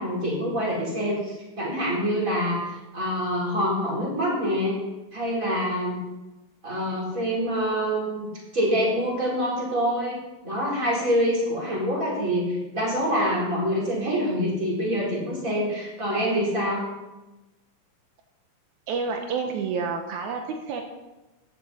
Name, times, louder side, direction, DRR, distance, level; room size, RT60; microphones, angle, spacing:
voice 1, 0.0-4.8 5.1-6.0 6.6-10.2 10.4-16.8, equal, 25° right, -4 dB, 4.5 m, -26 dB
voice 2, 18.9-20.8, right 5 dB, 80° right, 3 dB, 2.3 m, -29 dB
14.5 x 11.0 x 4.3 m, 1.1 s
omnidirectional pair, 3.4 m